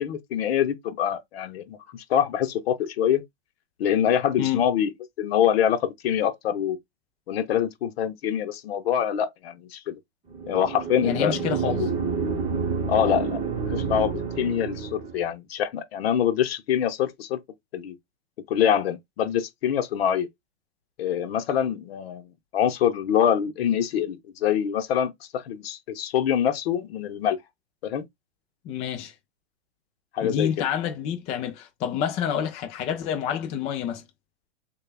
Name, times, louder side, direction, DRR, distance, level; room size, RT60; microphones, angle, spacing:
voice 1, 0.0-3.2 3.8-4.9 5.2-6.8 7.3-10.0 10.5-11.3 12.9-17.4 17.7-18.0 18.5-20.3 21.0-27.4 27.8-28.0 30.1-30.7, left 9 dB, 60° left, 0.9 m, -25 dB
sound 1, 10.3-15.3, right 5 dB, 15° right, 1.1 m, -29 dB
voice 2, 11.0-11.9 28.6-29.1 30.2-34.0, left 9 dB, 20° left, 0.4 m, -28 dB
6.4 x 2.3 x 2.2 m
hypercardioid pair, 125°, 34 cm